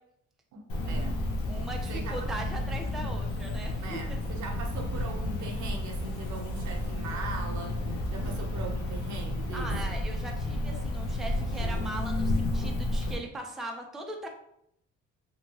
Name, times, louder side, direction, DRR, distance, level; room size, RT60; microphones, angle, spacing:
voice 1, 0.5-1.2 1.9-2.3 3.8-9.9, right 3 dB, 70° right, 3 dB, 0.7 m, -40 dB
Cricket, 0.7-13.1, left 1 dB, 80° left, 0.7 m, -31 dB
voice 2, 1.5-4.2 9.5-14.3, right 1 dB, ahead, 2 dB, 0.4 m, -39 dB
2.8 x 2.6 x 2.8 m, 0.73 s
cardioid pair, 90°, 30 cm